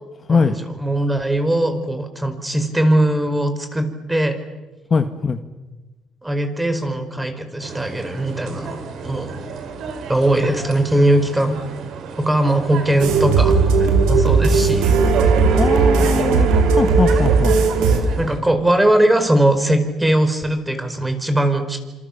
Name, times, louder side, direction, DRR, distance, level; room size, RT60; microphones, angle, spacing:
voice 1, 0.8-4.4 6.2-9.4 10.0-11.6 12.2-14.9 18.2-21.8, right 1 dB, 10° right, 8 dB, 4.8 m, -20 dB
voice 2, 4.9-5.4 15.5-16.5 16.7-17.5, left 5 dB, 35° left, 7 dB, 1.7 m, -20 dB
sound 1, 7.6-18.4, right 6 dB, 65° right, 4.4 m, -32 dB
sound 2, 13.0-18.0, right 4 dB, 90° right, 4.3 m, -16 dB
27.5 x 27.0 x 7.3 m, 1.2 s
cardioid pair, 95°, 0 cm